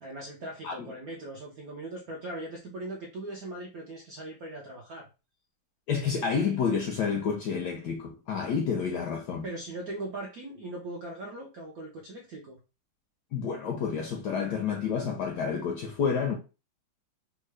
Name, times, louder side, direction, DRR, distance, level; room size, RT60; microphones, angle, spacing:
voice 1, 0.0-5.1 9.4-12.6, right 1 dB, 70° right, 0.8 m, -40 dB
voice 2, 5.9-9.4 13.3-16.4, left 6 dB, 75° left, 1.0 m, -29 dB
3.6 x 2.2 x 3.2 m
omnidirectional pair, 2.3 m